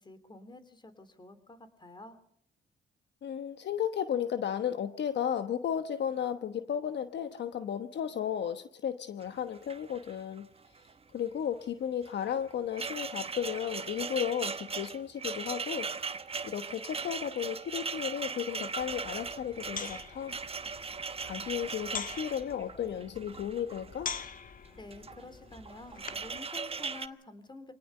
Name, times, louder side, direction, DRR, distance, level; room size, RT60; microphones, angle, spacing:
voice 1, 0.0-2.2 24.8-27.7, left 2 dB, 20° left, 11 dB, 3.2 m, -49 dB
voice 2, 3.2-10.5 11.1-15.9 16.4-20.4 21.2-24.1, left 9 dB, 60° left, 10 dB, 1.1 m, -34 dB
sound 1, 9.2-9.3 9.5-10.4 10.6-10.9 12.0-24.3 24.8-25.2 25.5-27.1, right 5 dB, 30° right, 1.1 m, -39 dB
sound 2, 18.8-26.4, left 6 dB, 45° left, 1.4 m, -44 dB
26.0 x 18.5 x 5.5 m, 0.69 s
cardioid pair, 90°, 20 cm